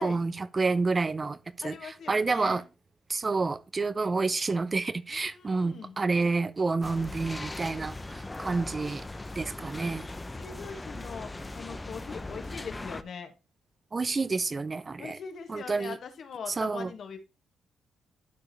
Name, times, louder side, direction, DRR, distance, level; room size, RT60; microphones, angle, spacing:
voice 1, 0.0-1.4 1.6-2.6 3.1-9.0 9.4-10.1 13.9-15.2 15.5-16.0 16.6-16.9, right 3 dB, 30° right, 0.5 m, -29 dB
voice 2, 1.6-2.7 5.1-6.0 8.8-9.5 10.3-13.3 15.0-17.2, left 6 dB, 60° left, 1.8 m, -42 dB
sound 1, 6.8-13.0, left 2 dB, 15° left, 0.6 m, -39 dB
12.5 x 4.9 x 3.1 m
cardioid pair, 105°, 0 cm